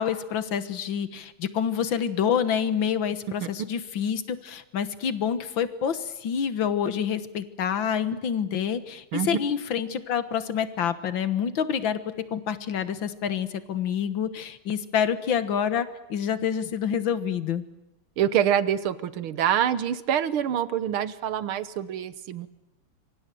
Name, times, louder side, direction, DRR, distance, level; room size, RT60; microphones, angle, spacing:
voice 1, 0.0-17.6, left 8 dB, 65° left, 13 dB, 2.0 m, -27 dB
voice 2, 18.2-22.5, right 9 dB, 80° right, 15 dB, 1.9 m, -26 dB
26.0 x 24.0 x 7.7 m, 0.92 s
omnidirectional pair, 2.3 m